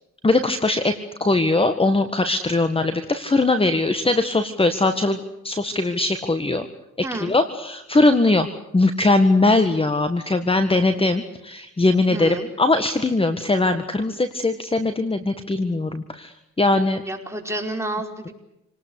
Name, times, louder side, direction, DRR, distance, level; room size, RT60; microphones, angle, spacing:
voice 1, 0.2-1.0 1.2-6.7 7.2-8.5 8.7-17.0, left 2 dB, 20° left, 9 dB, 1.8 m, -20 dB
voice 2, 7.0-7.3 12.1-12.5 17.0-18.3, right 2 dB, 10° right, 2 dB, 5.2 m, -29 dB
28.0 x 19.5 x 8.3 m, 0.86 s
cardioid pair, 90°, 30 cm